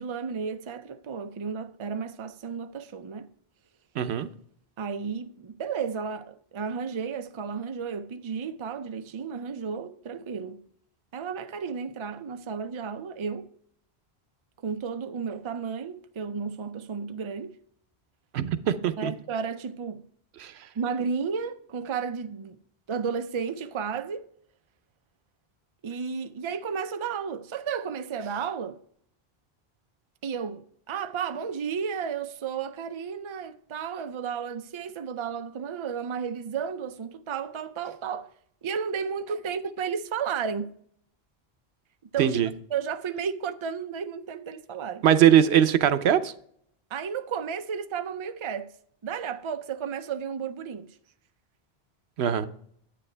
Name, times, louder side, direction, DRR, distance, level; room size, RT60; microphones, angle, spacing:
voice 1, 0.0-3.3 4.8-10.6 11.1-13.5 14.6-17.6 19.0-20.0 20.8-22.6 22.9-24.3 25.8-28.8 30.2-38.3 38.6-40.7 42.1-45.0 46.9-48.7 49.0-50.9, right 6 dB, 40° right, 0.4 m, -33 dB
voice 2, 4.0-4.3 18.3-19.1 20.4-20.5 42.2-42.5 45.0-46.3 52.2-52.5, right 10 dB, 90° right, 0.9 m, -21 dB
10.0 x 8.7 x 3.3 m
omnidirectional pair, 1.1 m